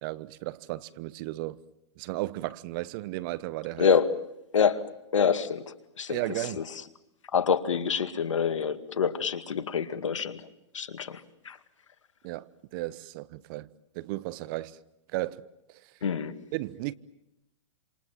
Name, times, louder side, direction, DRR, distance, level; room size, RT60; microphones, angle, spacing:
voice 1, 0.0-1.6 2.0-3.9 6.1-6.6 12.2-13.7 13.9-14.8 15.1-15.4 16.5-16.9, right 18 dB, 45° right, 1.1 m, -34 dB
voice 2, 3.8-4.1 4.5-6.6 7.3-10.4 10.7-11.6 16.0-16.4, left 6 dB, 90° left, 2.2 m, -27 dB
27.5 x 27.0 x 7.4 m
hypercardioid pair, 130°, 16 cm